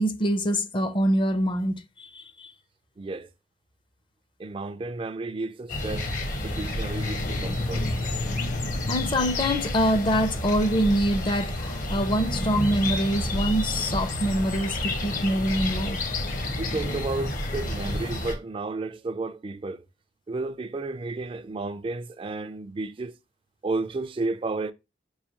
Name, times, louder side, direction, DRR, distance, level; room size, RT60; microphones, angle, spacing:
voice 1, 0.0-2.5 8.9-16.0, equal, 30° left, 0.5 m, -25 dB
voice 2, 3.0-3.3 4.4-6.1 6.4-7.9 16.6-19.8 20.3-23.1 23.6-24.7, right 3 dB, 30° right, 0.3 m, -32 dB
sound 1, 5.7-18.4, left 1 dB, 45° left, 0.9 m, -29 dB
5.5 x 2.6 x 2.8 m
head